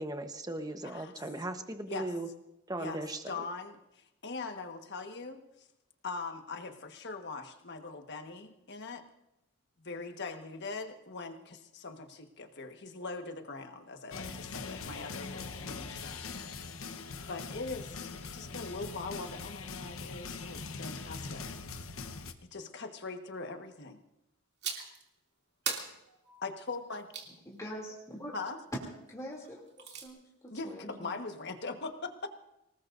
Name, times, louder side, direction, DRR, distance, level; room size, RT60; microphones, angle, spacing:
voice 1, 0.0-2.3 2.7-3.4, right 1 dB, 20° right, 6 dB, 1.1 m, -38 dB
voice 2, 3.3-5.7 6.0-9.0 9.8-16.6 17.3-21.5 22.4-24.0 26.4-27.1 28.3-28.6 30.5-32.3, left 3 dB, 55° left, 6 dB, 1.5 m, -41 dB
sound 1, 14.1-22.3, left 4 dB, 80° left, 1.1 m, -42 dB
sound 2, 24.6-25.0 25.7-27.3 29.4-30.1, right 6 dB, 55° right, 2.7 m, -39 dB
voice 3, 27.5-27.9 28.2-28.3 29.1-29.6 29.9-31.1, equal, 15° left, -3 dB, 2.9 m, -44 dB
25.5 x 19.0 x 2.7 m, 0.90 s
head